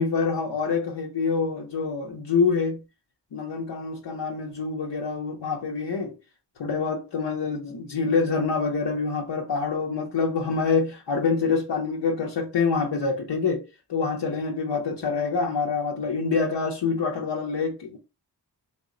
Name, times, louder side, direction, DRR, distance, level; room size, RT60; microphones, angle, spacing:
voice 1, 0.0-2.8 3.3-6.1 6.6-13.6 13.9-18.0, left 4 dB, 80° left, 0.7 m, -26 dB
3.2 x 2.1 x 3.7 m
wide cardioid pair, 70°, 42 cm